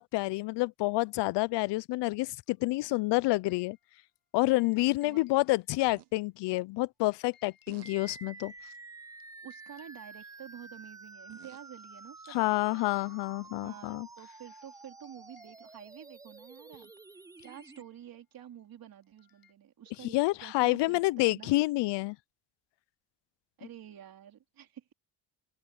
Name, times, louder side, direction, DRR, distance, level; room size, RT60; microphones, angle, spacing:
voice 1, 0.0-3.8 4.3-8.5 12.3-14.1 20.0-22.2, left 20 dB, 75° left, 0.5 m, -28 dB
sound 1, 2.5-8.7 9.2-10.9 11.4-11.5 11.8-19.5, left 9 dB, 55° left, 7.7 m, -70 dB
sound 2, 5.9-6.1 7.7-7.9 8.4-8.7 10.1-10.4 11.1-11.7 12.7-12.8, right 16 dB, 70° right, 1.1 m, -55 dB
sound 3, 7.8-17.8, right 3 dB, 10° right, 0.3 m, -50 dB
voice 2, 9.4-12.8 13.5-16.9 17.4-21.5 23.6-24.9, right 10 dB, 55° right, 3.7 m, -49 dB
open air
cardioid pair, 120°, 43 cm